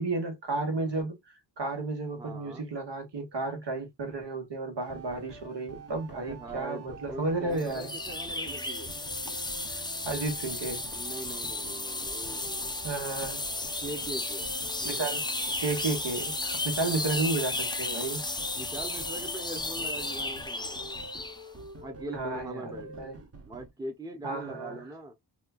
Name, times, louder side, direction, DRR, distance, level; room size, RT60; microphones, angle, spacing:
voice 1, 0.0-7.9 10.0-10.8 12.8-13.7 14.8-15.3 15.6-18.2 22.1-22.6 23.0-23.2 24.2-24.8, right 3 dB, 70° right, 1.3 m, -32 dB
voice 2, 2.1-2.7 6.1-8.9 10.9-12.8 13.8-14.5 16.8-17.5 18.5-20.9 21.8-23.1 23.4-25.1, right 1 dB, 10° right, 0.7 m, -41 dB
sound 1, 4.8-23.7, right 3 dB, 35° right, 0.9 m, -46 dB
sound 2, 7.6-21.4, left 2 dB, 10° left, 0.4 m, -34 dB
4.3 x 2.3 x 2.3 m
wide cardioid pair, 105°, 43 cm